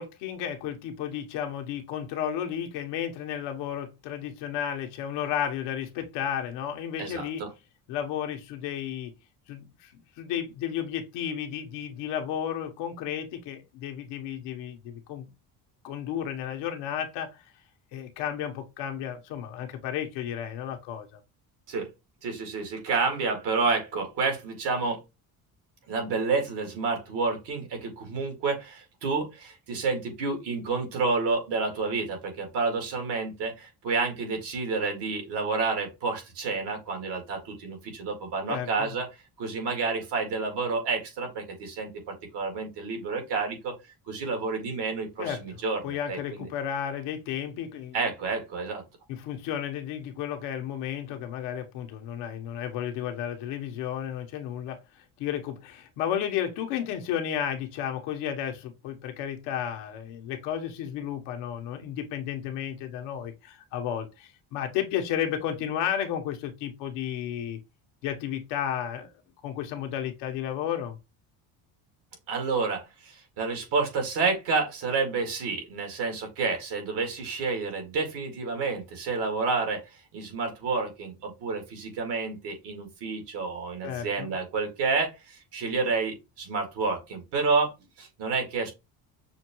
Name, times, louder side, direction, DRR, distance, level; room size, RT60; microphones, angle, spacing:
voice 1, 0.0-7.4 7.9-9.1 9.5-9.9 10.2-15.3 15.8-17.4 17.9-21.2 38.5-38.9 45.2-48.0 49.1-54.8 55.2-67.6 68.0-69.1 69.4-71.0 83.8-84.3, left 9 dB, 90° left, 1.1 m, -33 dB
voice 2, 7.0-7.5 21.7-21.9 22.2-25.0 25.9-39.1 39.4-43.7 44.1-46.5 47.9-48.8 72.3-88.7, right 4 dB, 75° right, 2.1 m, -29 dB
6.3 x 2.3 x 3.0 m
cardioid pair, 110°, 41 cm